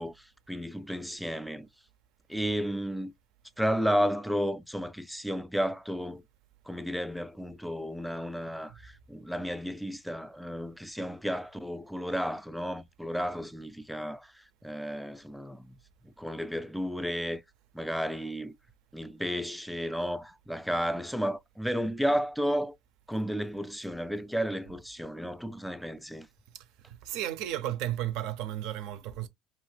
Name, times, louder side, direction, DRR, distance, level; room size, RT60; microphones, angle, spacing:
voice 1, 0.0-1.7 2.3-3.1 3.6-6.2 6.7-15.8 16.0-17.4 17.7-18.6 18.9-22.8 23.1-26.3, equal, ahead, 0.3 m, -33 dB
voice 2, 26.5-29.3, right 12 dB, 70° right, 0.5 m, -34 dB
2.8 x 2.5 x 3.2 m
supercardioid pair, 110°, 0 cm